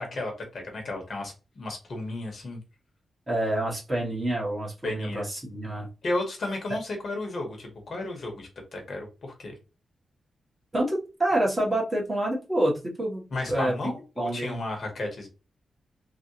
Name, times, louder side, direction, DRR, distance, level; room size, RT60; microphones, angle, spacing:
voice 1, 0.0-2.6 4.8-5.3 6.0-9.5 13.3-15.3, left 2 dB, 50° left, 3 dB, 1.1 m, -33 dB
voice 2, 3.3-5.9 6.7-6.8 10.7-13.2 13.5-14.6, right 1 dB, 20° right, -4 dB, 1.4 m, -27 dB
3.5 x 2.4 x 2.8 m, 0.30 s
wide cardioid pair, 130°, 0 cm